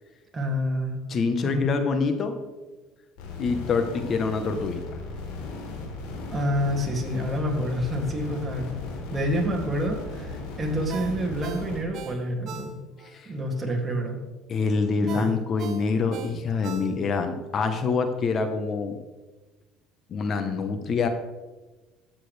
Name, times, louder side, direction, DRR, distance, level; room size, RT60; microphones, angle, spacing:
voice 1, 0.3-1.0 1.4-1.7 6.3-8.8 9.1-12.8 13.3-14.2 15.0-15.3, equal, 20° right, 0 dB, 2.7 m, -28 dB
voice 2, 1.1-2.4 3.4-5.0 13.0-13.3 14.5-19.0 20.1-21.1, left 4 dB, 45° left, 7 dB, 1.2 m, -26 dB
sound 1, 3.2-11.8, left 3 dB, 80° left, 3.7 m, -36 dB
Ringtone, 10.9-13.1 13.5-13.6 15.1-17.3 17.7-17.8, right 8 dB, 55° right, 1.0 m, -40 dB
13.0 x 8.7 x 3.5 m, 1.2 s
supercardioid pair, 95°, 0 cm